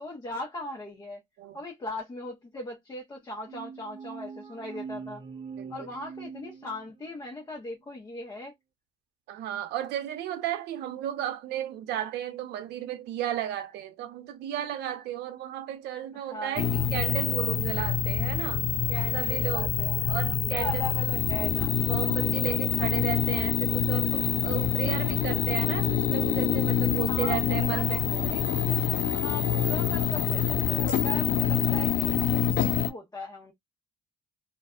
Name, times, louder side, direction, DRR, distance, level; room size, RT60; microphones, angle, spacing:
voice 1, 0.0-1.2 1.5-5.2 5.7-8.5 16.3-16.9 18.9-20.2 20.5-21.7 27.1-28.4 29.1-33.5, left 1 dB, 20° left, 0.8 m, -39 dB
sound 1, 3.5-7.2, right 6 dB, 30° right, 0.6 m, -42 dB
voice 2, 5.6-5.9 9.3-18.6 19.1-19.7 20.1-20.9 21.8-28.0, right 12 dB, 80° right, 0.7 m, -34 dB
sound 2, 16.6-32.9, left 10 dB, 50° left, 0.4 m, -26 dB
2.5 x 2.2 x 2.3 m
cardioid pair, 110°, 17 cm